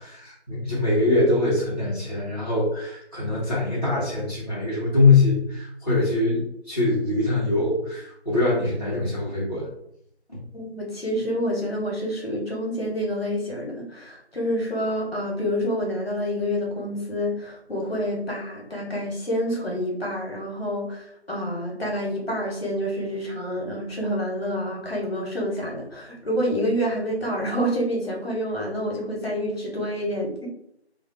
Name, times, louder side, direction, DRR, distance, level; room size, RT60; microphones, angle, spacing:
voice 1, 0.0-6.4 6.7-9.7 10.3-10.4, left 3 dB, 35° left, -9 dB, 0.6 m, -23 dB
voice 2, 10.5-30.5, equal, 65° left, -2 dB, 1.0 m, -28 dB
2.3 x 2.1 x 2.6 m, 0.73 s
figure-of-eight pair, 170°, 33 cm